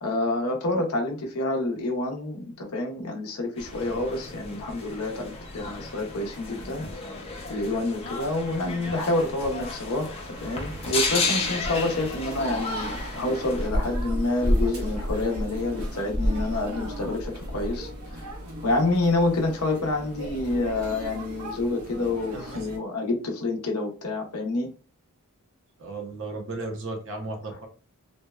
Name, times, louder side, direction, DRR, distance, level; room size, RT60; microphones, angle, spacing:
voice 1, 0.0-6.8 7.5-10.1 10.4-17.9 18.6-24.7, left 2 dB, 80° left, 2 dB, 0.6 m, -28 dB
sound 1, 3.6-13.7, left 3 dB, 25° left, 0.4 m, -33 dB
sound 2, 10.4-22.8, equal, 85° right, 0.9 m, -32 dB
voice 2, 25.8-27.7, right 2 dB, 60° right, 2 dB, 0.6 m, -35 dB
2.7 x 2.0 x 2.2 m, 0.35 s
head